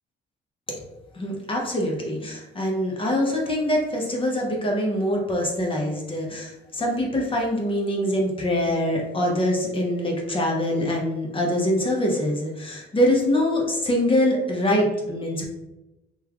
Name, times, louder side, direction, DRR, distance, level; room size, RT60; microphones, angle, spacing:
voice 1, 1.1-15.5, left 1 dB, 25° left, -1 dB, 0.7 m, -24 dB
3.0 x 2.3 x 2.3 m, 1.0 s
cardioid pair, 90°, 20 cm